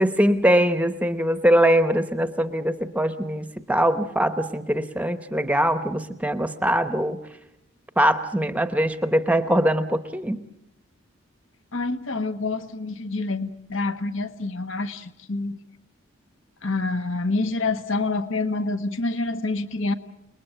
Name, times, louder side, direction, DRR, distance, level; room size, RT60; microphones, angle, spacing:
voice 1, 0.0-7.2 8.0-10.4, equal, 5° right, 10 dB, 0.9 m, -22 dB
voice 2, 11.7-15.6 16.6-19.9, left 3 dB, 70° left, 10 dB, 1.4 m, -27 dB
30.0 x 21.0 x 8.9 m, 0.82 s
head